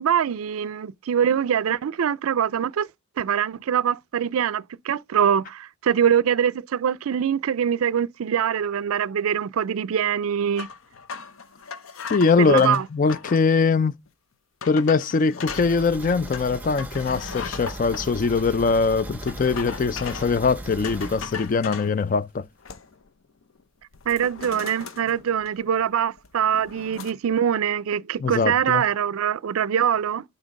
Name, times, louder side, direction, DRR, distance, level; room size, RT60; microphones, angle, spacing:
voice 1, 0.0-2.9 3.2-10.7 12.4-12.9 24.1-30.2, right 8 dB, 85° right, 0.4 m, -23 dB
sound 1, 10.6-13.5 14.1-14.2 14.6-15.7 16.3-18.0 19.3-20.4 20.8-21.9 22.4-23.1 23.4-23.6 23.9-25.8 26.2-27.1, left 5 dB, 70° left, 0.7 m, -37 dB
voice 2, 12.1-13.9 14.7-22.5 28.2-28.8, left 4 dB, 40° left, 0.4 m, -22 dB
sound 2, 15.5-22.1 22.4-22.5 22.9-23.0, right 1 dB, 10° right, 0.6 m, -38 dB
7.4 x 2.9 x 5.2 m
head